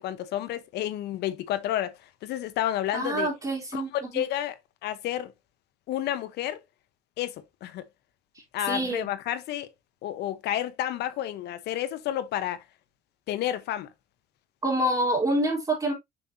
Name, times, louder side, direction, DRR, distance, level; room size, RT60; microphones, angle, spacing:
voice 1, 0.0-1.9 2.2-3.3 3.7-4.5 4.8-5.3 5.9-6.6 7.2-7.9 8.5-9.7 10.0-12.6 13.3-13.9, left 12 dB, 75° left, 1.0 m, -30 dB
voice 2, 2.9-4.3 8.7-9.1 14.6-15.9, right 1 dB, 20° right, 3.6 m, -27 dB
7.5 x 5.7 x 2.7 m
cardioid pair, 110°, 17 cm